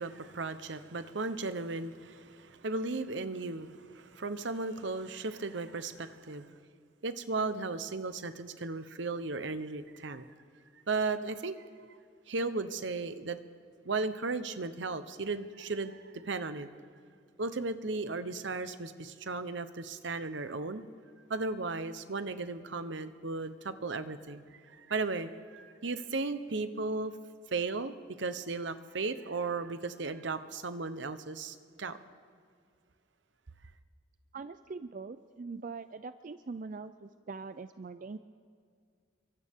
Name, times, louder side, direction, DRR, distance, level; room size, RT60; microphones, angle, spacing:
voice 1, 0.0-6.5 7.0-10.3 10.9-11.6 11.9-12.0 12.3-13.4 13.8-16.7 17.4-20.8 21.3-27.1 27.5-32.0, right 3 dB, 70° right, 11 dB, 0.9 m, -35 dB
voice 2, 34.3-38.2, right 4 dB, 45° right, 11 dB, 0.4 m, -42 dB
29.5 x 24.0 x 3.7 m, 2.1 s
head